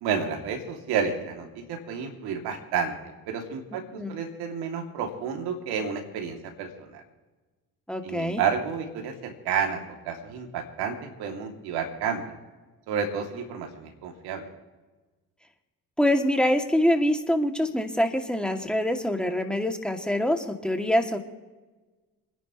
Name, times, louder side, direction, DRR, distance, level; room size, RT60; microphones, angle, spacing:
voice 1, 0.0-2.9 3.3-7.0 8.0-12.3 12.9-14.5, right 6 dB, 80° right, 3 dB, 2.7 m, -30 dB
voice 2, 3.7-4.2 7.9-8.4 16.0-21.2, left 1 dB, ahead, 4 dB, 2.3 m, -25 dB
28.5 x 11.0 x 3.1 m, 1.3 s
hypercardioid pair, 55°, 38 cm